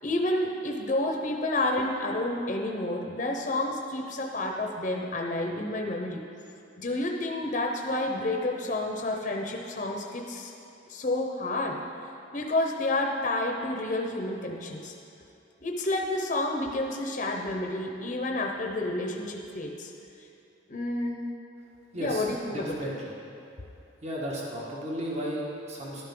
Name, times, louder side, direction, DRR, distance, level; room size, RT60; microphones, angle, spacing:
voice 1, 0.0-6.2 6.8-10.5 10.9-11.8 12.3-14.9 15.6-19.9 20.7-21.2 21.9-22.9, left 2 dB, 40° left, 1 dB, 0.8 m, -30 dB
voice 2, 21.9-23.2 24.0-26.0, equal, 35° right, -4 dB, 1.7 m, -34 dB
12.0 x 10.5 x 3.8 m, 2.8 s
head